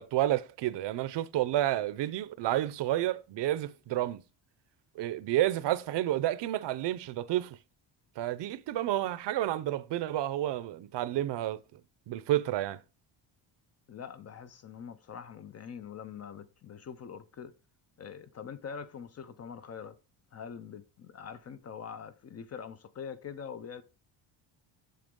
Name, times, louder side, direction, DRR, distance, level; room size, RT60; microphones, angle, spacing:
voice 1, 0.0-4.2 5.0-7.6 8.2-11.6 12.1-12.8, right 13 dB, 60° right, 0.7 m, -30 dB
voice 2, 13.9-17.5 18.0-20.0 20.3-23.8, left 7 dB, 35° left, 0.4 m, -44 dB
7.9 x 6.9 x 3.7 m
cardioid pair, 160°, 47 cm